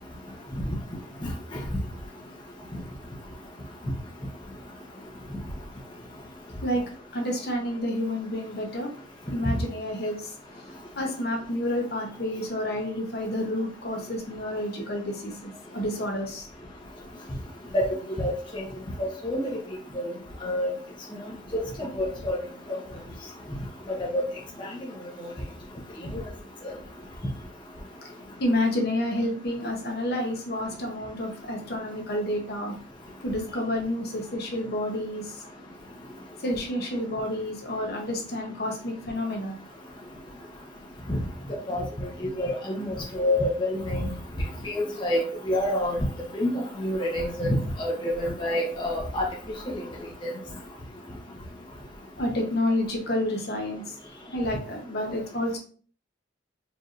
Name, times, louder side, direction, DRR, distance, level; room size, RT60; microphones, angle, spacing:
voice 1, 7.1-8.9 9.3-10.3 11.0-16.5 28.4-32.7 33.2-35.4 36.4-39.5 52.2-55.6, left 1 dB, 55° left, 0 dB, 0.9 m, -29 dB
voice 2, 18.2-18.6 19.0-19.5 19.9-20.0 20.4-20.7 21.5-21.6 22.0-22.4 23.9-24.2 25.2-25.3 41.1-41.2 41.7-41.8 42.4-44.0 44.6-45.2 45.5-46.1 46.3-49.3 49.7-49.8 50.2-50.3, left 1 dB, 25° left, -3 dB, 0.7 m, -27 dB
4.6 x 2.6 x 2.5 m, 0.44 s
head